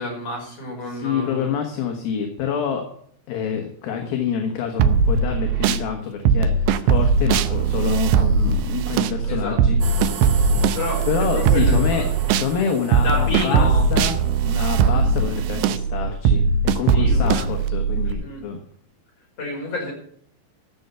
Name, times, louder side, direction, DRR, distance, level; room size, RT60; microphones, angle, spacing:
voice 1, 0.0-1.5 9.2-9.6 10.8-12.1 13.0-13.9 14.7-15.1 16.9-17.5 18.0-18.4 19.4-19.9, left 1 dB, 35° left, -1 dB, 5.9 m, -29 dB
voice 2, 0.9-2.9 3.3-9.8 11.1-12.0 12.3-14.2 14.4-16.4 16.7-18.6, left 7 dB, 65° left, 3 dB, 3.0 m, -27 dB
sound 1, 4.8-5.8 6.3-12.5 12.9-18.1, right 5 dB, 90° right, 3.0 m, -19 dB
sound 2, 9.8-15.8, right 6 dB, 60° right, 2.5 m, -35 dB
15.0 x 7.2 x 6.8 m, 0.63 s
omnidirectional pair, 5.0 m